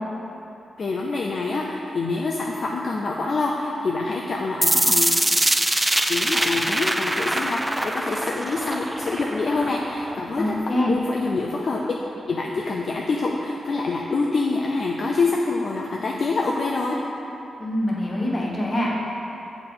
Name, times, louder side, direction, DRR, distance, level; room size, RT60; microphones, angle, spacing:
voice 1, 0.8-5.2 6.1-12.0 12.3-17.0, left 3 dB, 55° left, -1 dB, 0.5 m, -26 dB
sound 1, 4.6-10.6, right 1 dB, 10° right, 0.3 m, -23 dB
voice 2, 10.4-10.9 17.6-18.9, left 1 dB, 35° left, -4 dB, 1.3 m, -24 dB
7.3 x 5.7 x 3.9 m, 3.0 s
cardioid pair, 100°, 0 cm